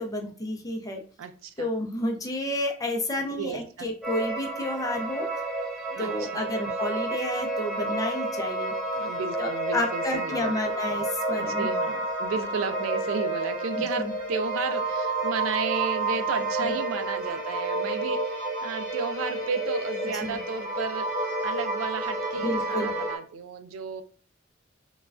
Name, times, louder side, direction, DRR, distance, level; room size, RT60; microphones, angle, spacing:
voice 1, 0.0-1.0 1.6-5.3 6.0-8.7 9.4-11.7 14.0-14.1 16.6-16.7 20.2-20.4 22.4-22.9, left 1 dB, 20° left, 3 dB, 0.5 m, -30 dB
voice 2, 1.2-1.7 3.4-3.9 5.9-6.4 8.9-10.6 11.4-24.0, right 5 dB, 80° right, 9 dB, 0.4 m, -33 dB
sound 1, 4.0-23.2, right 2 dB, 5° right, 1.2 m, -30 dB
3.1 x 2.3 x 2.4 m, 0.41 s
head